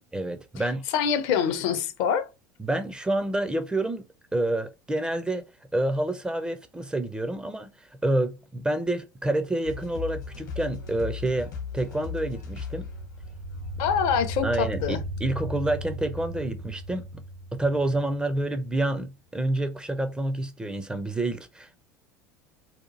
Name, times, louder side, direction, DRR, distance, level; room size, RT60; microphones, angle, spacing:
voice 1, 0.1-0.9 2.6-4.0 4.3-5.4 5.7-12.9 14.4-17.2 17.5-21.8, right 1 dB, 10° right, 0.4 m, -28 dB
voice 2, 0.9-2.3 13.8-15.0, left 7 dB, 50° left, 0.5 m, -25 dB
sound 1, 9.6-14.6, left 5 dB, 70° left, 0.9 m, -37 dB
sound 2, 13.1-18.4, equal, 75° right, 0.5 m, -36 dB
2.8 x 2.3 x 2.5 m
figure-of-eight pair, 70°, 10 cm